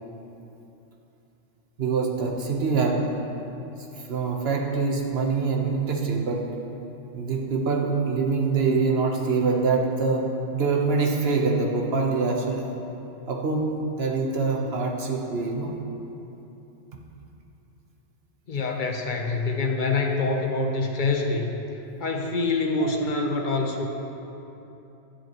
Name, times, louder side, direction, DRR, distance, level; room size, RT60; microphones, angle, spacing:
voice 1, 1.8-3.1 4.1-6.4 7.1-10.2 10.5-12.6 13.3-13.7 13.9-15.7 22.8-22.9, right 4 dB, 55° right, 0 dB, 1.2 m, -24 dB
voice 2, 18.5-21.6 22.0-23.9, left 3 dB, 45° left, 2 dB, 0.9 m, -25 dB
12.5 x 10.0 x 3.0 m, 2.9 s
omnidirectional pair, 1.3 m